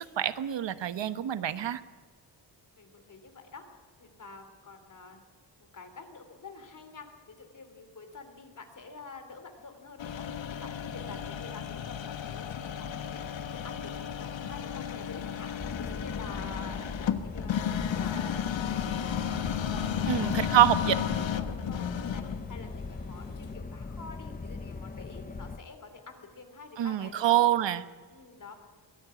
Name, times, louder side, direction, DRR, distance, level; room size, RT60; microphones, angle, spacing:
voice 1, 0.0-1.8 20.1-21.0 26.8-27.8, right 12 dB, 75° right, 12 dB, 1.1 m, -26 dB
voice 2, 2.8-3.6 4.0-5.3 5.6-18.3 18.6-20.9 21.2-27.4 28.1-28.5, left 4 dB, 45° left, 6 dB, 3.2 m, -48 dB
sound 1, 10.0-23.6, left 9 dB, 90° left, 1.4 m, -34 dB
sound 2, 15.6-25.6, left 3 dB, 20° left, 0.9 m, -40 dB
22.0 x 15.0 x 9.7 m, 1.5 s
wide cardioid pair, 170°, 44 cm